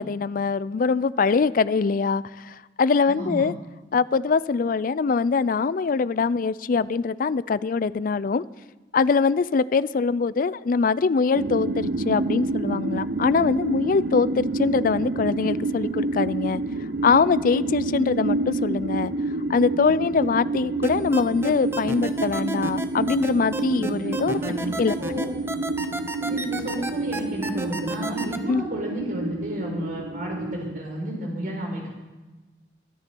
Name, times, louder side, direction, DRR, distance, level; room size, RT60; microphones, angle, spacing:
voice 1, 0.0-3.5 3.9-8.4 8.9-16.6 17.0-19.1 19.5-24.4 24.8-25.0 28.5-28.6, left 5 dB, 50° left, 18 dB, 0.4 m, -23 dB
voice 2, 3.1-3.4 23.8-23.9 24.2-25.3 26.2-31.9, equal, 50° right, -1 dB, 4.3 m, -32 dB
sound 1, 11.4-30.8, right 2 dB, 70° right, 0.6 m, -29 dB
sound 2, 20.8-28.4, right 2 dB, 15° right, 0.7 m, -31 dB
23.0 x 9.8 x 4.5 m, 1.2 s
head